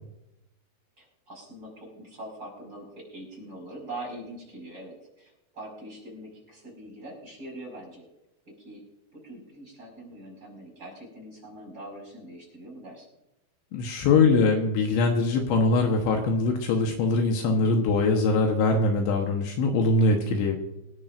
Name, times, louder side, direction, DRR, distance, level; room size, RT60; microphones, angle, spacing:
voice 1, 1.0-8.0 8.5-8.8 9.1-13.1, right 1 dB, 20° right, -2 dB, 5.7 m, -43 dB
voice 2, 13.7-20.6, left 3 dB, 75° left, 2 dB, 3.3 m, -22 dB
26.0 x 10.5 x 2.6 m, 0.91 s
omnidirectional pair, 5.7 m